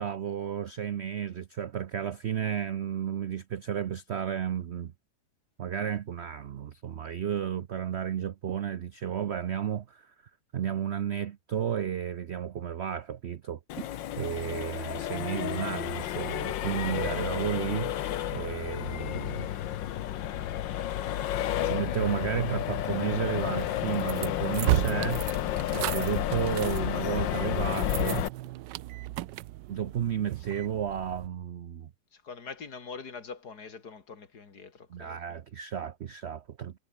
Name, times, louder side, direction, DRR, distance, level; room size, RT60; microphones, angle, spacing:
voice 1, 0.0-4.9 5.6-10.1 10.5-13.9 14.2-17.9 18.3-19.5 21.6-25.3 25.7-28.3 29.7-31.9 34.9-36.8, right 9 dB, 60° right, 0.7 m, -32 dB
Accelerating revving vroom, 13.7-28.3, left 12 dB, 85° left, 1.7 m, -31 dB
sound 1, 23.6-31.3, right 16 dB, 80° right, 1.2 m, -34 dB
voice 2, 32.1-35.4, left 5 dB, 60° left, 2.8 m, -44 dB
omnidirectional pair, 1.9 m